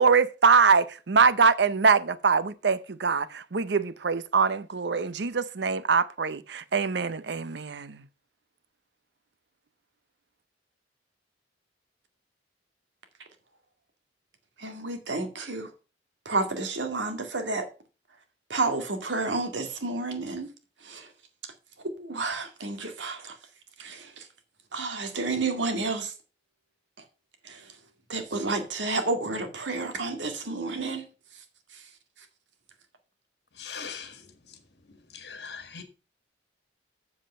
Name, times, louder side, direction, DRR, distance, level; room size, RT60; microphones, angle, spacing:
voice 1, 0.0-8.0, right 5 dB, 70° right, 0.6 m, -23 dB
voice 2, 14.6-15.7 16.3-17.7 18.5-20.5 20.9-21.1 21.9-23.3 23.8-24.2 24.7-26.1 27.5-27.6 28.1-31.1, right 3 dB, 85° right, 2.1 m, -30 dB
voice 3, 33.6-34.1 35.1-35.8, left 6 dB, 65° left, 1.7 m, -39 dB
7.7 x 7.3 x 5.5 m
head